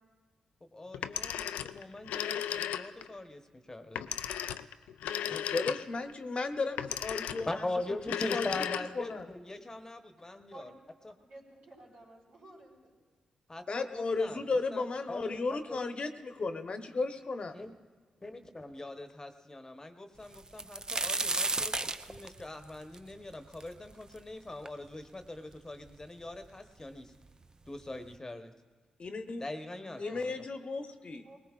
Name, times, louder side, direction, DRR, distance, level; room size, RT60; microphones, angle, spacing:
voice 1, 0.7-4.3 7.5-10.7 11.0-11.1 13.5-15.9 17.5-17.7 18.2-27.1 27.7-28.5 29.4-30.3, left 2 dB, 25° left, 7 dB, 1.0 m, -42 dB
Telephone, 0.9-3.1 4.0-6.1 6.8-7.6 8.0-9.2, left 10 dB, 85° left, 0.3 m, -35 dB
voice 2, 5.3-7.7 8.3-8.6 9.0-9.3 13.7-17.6 29.0-29.4 30.0-31.2, left 3 dB, 50° left, 8 dB, 0.9 m, -34 dB
voice 3, 11.2-13.0 29.8-30.5 31.2-31.4, right 1 dB, 80° right, -4 dB, 4.3 m, -53 dB
sound 1, 20.3-24.2 24.7-24.8 25.5-25.6 25.9-26.5 27.4-27.5 27.9-28.1, right 2 dB, 30° right, 0.5 m, -33 dB
20.0 x 18.5 x 2.4 m, 1.4 s
supercardioid pair, 45°, 2 cm